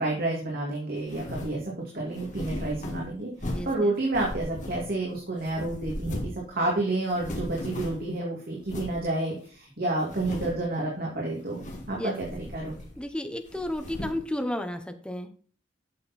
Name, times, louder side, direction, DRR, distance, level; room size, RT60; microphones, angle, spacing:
voice 1, 0.0-1.6 1.9-12.9, right 2 dB, 50° right, -2 dB, 2.3 m, -30 dB
sound 1, 1.1-1.6 2.1-3.8 4.1-5.1 5.4-6.5 6.7-6.8 7.1-8.1 8.7-9.0 9.5-9.6 10.0-10.7 11.4-12.0 12.2-13.1 13.5-14.3, left 1 dB, 40° left, 2.0 m, -37 dB
voice 2, 3.5-3.9 11.9-12.1 13.0-15.3, left 1 dB, 5° left, 6 dB, 1.0 m, -33 dB
8.8 x 6.7 x 4.2 m, 0.41 s
head